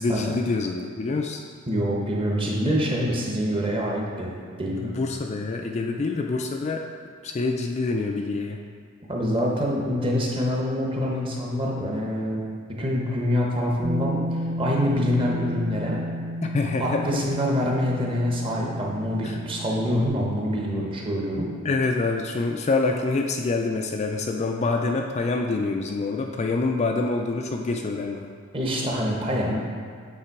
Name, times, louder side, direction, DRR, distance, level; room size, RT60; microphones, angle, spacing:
voice 1, 0.0-1.4 4.8-6.8 7.2-8.6 16.5-17.1 19.2-19.4 21.6-28.3, left 3 dB, 30° left, 2 dB, 0.3 m, -26 dB
voice 2, 1.7-4.3 4.6-4.9 9.1-12.4 12.8-16.0 16.8-21.5 28.5-29.6, equal, 25° right, -2 dB, 0.9 m, -25 dB
Bass guitar, 13.8-20.1, equal, 45° right, 0.5 m, -32 dB
8.7 x 3.3 x 4.6 m, 2.1 s
head